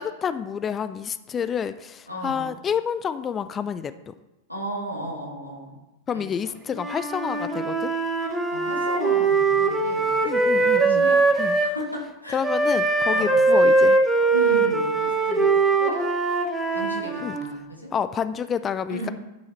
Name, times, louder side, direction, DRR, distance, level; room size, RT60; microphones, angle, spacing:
voice 1, 0.0-4.1 6.1-7.9 10.2-11.1 11.4-11.6 12.3-14.0 17.2-17.4 17.9-19.1, left 7 dB, 25° left, 12 dB, 0.4 m, -29 dB
voice 2, 2.1-2.6 4.5-5.8 6.1-6.5 8.2-11.4 11.6-12.4 13.1-13.4 14.3-15.5 15.8-16.1 16.7-17.9 18.9-19.1, right 1 dB, 90° left, -2 dB, 1.9 m, -35 dB
Wind instrument woodwind instrument, 6.7-11.7 12.4-17.4, right 3 dB, 10° right, 1.2 m, -21 dB
9.9 x 5.6 x 4.3 m, 0.99 s
figure-of-eight pair, 90°, 0 cm